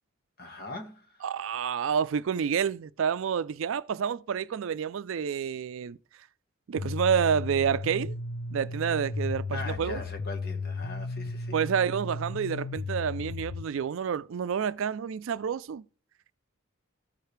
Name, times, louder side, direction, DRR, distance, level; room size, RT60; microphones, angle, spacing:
voice 1, 0.4-1.2 9.5-11.6, left 2 dB, 50° left, 1.5 m, -40 dB
voice 2, 1.2-6.0 6.7-8.1 8.5-10.0 11.5-15.8, right 7 dB, 65° right, 0.4 m, -29 dB
sound 1, 6.8-13.6, left 3 dB, 75° left, 0.6 m, -35 dB
14.0 x 4.8 x 3.3 m
head